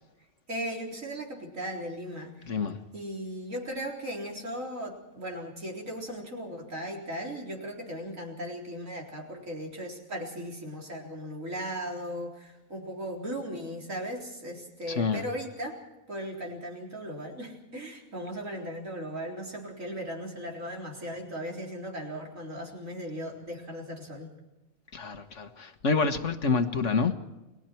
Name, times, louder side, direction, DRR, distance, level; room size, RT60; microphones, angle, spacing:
voice 1, 0.5-2.3 2.9-15.8 16.1-24.3, equal, 70° right, 4.4 m, -37 dB
voice 2, 2.4-2.8 14.9-15.2 24.9-27.1, left 4 dB, 60° left, 1.7 m, -27 dB
30.0 x 20.5 x 4.5 m
omnidirectional pair, 1.4 m